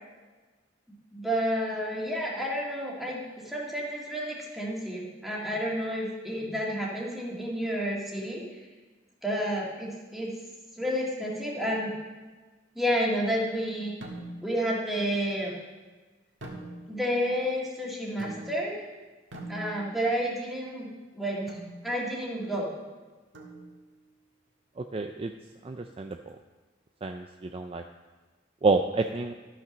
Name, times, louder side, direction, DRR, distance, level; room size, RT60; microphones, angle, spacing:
voice 1, 1.1-8.4 9.2-10.3 10.7-11.9 12.7-13.9 14.4-15.5 16.9-18.7 19.5-22.7, equal, ahead, -4 dB, 2.1 m, -30 dB
sound 1, 14.0-14.6 16.4-17.1 18.2-18.8 19.3-20.1 21.5-21.8 23.3-24.0, right 1 dB, 75° right, 1.7 m, -42 dB
voice 2, 24.8-25.3 25.6-26.2 27.0-27.8 28.6-29.3, right 3 dB, 30° right, 6 dB, 0.4 m, -28 dB
12.5 x 5.9 x 6.1 m, 1.3 s
head